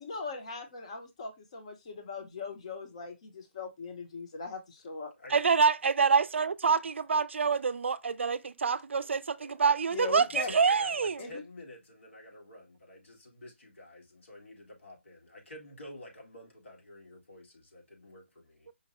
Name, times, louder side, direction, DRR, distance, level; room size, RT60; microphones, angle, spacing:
voice 1, 0.0-5.1 9.9-10.5 11.2-11.4, left 4 dB, 30° left, 0.7 m, -40 dB
voice 2, 5.3-11.2, right 5 dB, 75° right, 0.4 m, -26 dB
voice 3, 9.4-9.8 10.2-18.7, left 1 dB, 85° left, 1.9 m, -50 dB
5.1 x 2.1 x 4.0 m
hypercardioid pair, 175°, 7 cm